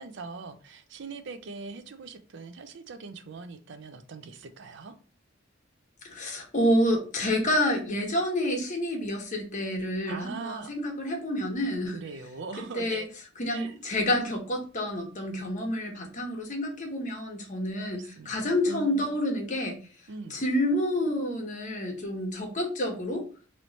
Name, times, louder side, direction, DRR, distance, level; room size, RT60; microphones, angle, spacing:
voice 1, 0.0-4.9 10.0-10.7 11.9-13.1 13.5-13.7 17.9-19.1 20.1-20.4, right 4 dB, 60° right, 0.5 m, -41 dB
voice 2, 6.0-12.0 12.7-13.0 13.4-19.8 20.3-23.3, left 1 dB, 40° left, 1.1 m, -28 dB
3.1 x 3.1 x 4.0 m
head